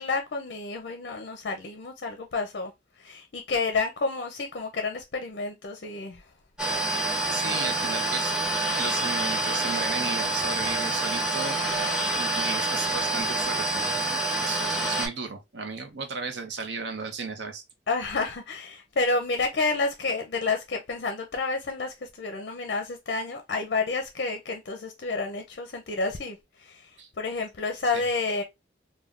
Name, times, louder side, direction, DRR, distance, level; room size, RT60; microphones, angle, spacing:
voice 1, 0.0-2.7 3.0-6.2 7.4-7.9 17.9-26.8 27.2-28.4, left 3 dB, 55° left, 0.5 m, -30 dB
sound 1, 6.6-15.1, right 2 dB, 5° right, 1.0 m, -27 dB
voice 2, 7.3-8.3 8.8-11.6 12.1-17.6 27.0-27.1 27.9-28.0, right 4 dB, 65° right, 0.6 m, -35 dB
3.5 x 2.2 x 2.4 m
head